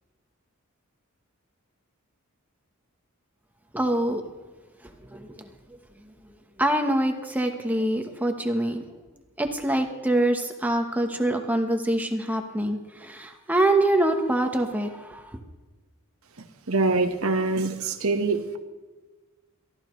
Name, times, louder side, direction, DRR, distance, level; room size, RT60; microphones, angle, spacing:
voice 1, 3.7-4.2 4.8-5.5 6.6-8.8 9.4-15.4, right 1 dB, 5° right, 4 dB, 1.0 m, -25 dB
voice 2, 16.7-18.6, right 3 dB, 75° right, 5 dB, 1.4 m, -24 dB
23.0 x 14.0 x 3.2 m, 1.3 s
head